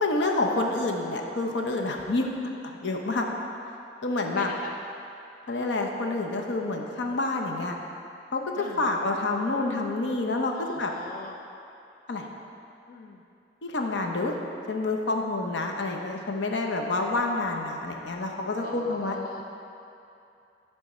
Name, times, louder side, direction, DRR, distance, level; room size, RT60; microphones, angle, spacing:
voice 1, 0.0-2.3 2.6-3.3 4.0-4.5 5.5-7.7 8.3-10.9 12.1-12.3 13.6-14.3 14.7-19.2, left 2 dB, 85° left, 2 dB, 0.7 m, -28 dB
voice 2, 4.2-4.7 8.5-8.9 10.5-11.4 12.9-13.2 18.6-19.4, left 3 dB, 50° left, 2 dB, 0.3 m, -41 dB
10.0 x 3.5 x 4.2 m, 2.7 s
head